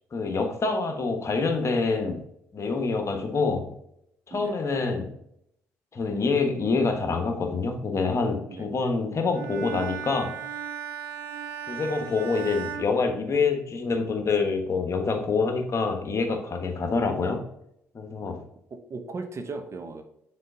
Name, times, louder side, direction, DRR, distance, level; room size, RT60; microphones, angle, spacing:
voice 1, 0.1-2.2 2.5-3.7 4.3-5.1 5.9-10.3 11.7-17.4 17.9-18.4, left 4 dB, 45° left, 5 dB, 1.3 m, -26 dB
voice 2, 8.5-8.9 18.7-20.0, right 3 dB, 45° right, 6 dB, 1.0 m, -37 dB
Bowed string instrument, 9.3-13.8, right 8 dB, 80° right, 1.0 m, -37 dB
6.6 x 4.2 x 3.8 m, 0.74 s
hypercardioid pair, 50°, 7 cm